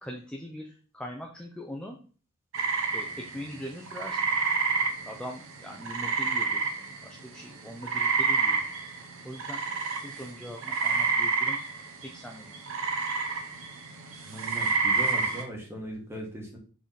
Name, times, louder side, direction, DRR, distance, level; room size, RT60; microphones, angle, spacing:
voice 1, 0.0-2.0 2.9-4.2 5.1-6.8 7.0-8.9 9.2-9.6 10.0-11.6 12.0-12.6, equal, 5° left, 0 dB, 0.6 m, -41 dB
sound 1, 2.5-7.2 7.5-15.4, right 4 dB, 70° right, 1.1 m, -29 dB
voice 2, 14.3-16.6, equal, 10° right, -1 dB, 1.8 m, -39 dB
6.2 x 3.7 x 4.1 m, 0.39 s
head